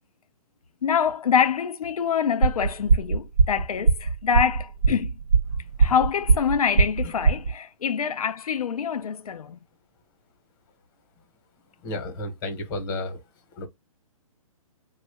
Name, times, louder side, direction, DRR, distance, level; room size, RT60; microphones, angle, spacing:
voice 1, 0.8-5.1 5.8-9.6, left 7 dB, 85° left, 0.6 m, -25 dB
sound 1, 2.4-7.5, right 4 dB, 70° right, 1.0 m, -20 dB
voice 2, 11.8-13.2 13.6-13.7, left 2 dB, 35° left, 1.0 m, -32 dB
3.1 x 2.4 x 3.3 m
hypercardioid pair, 145°, 18 cm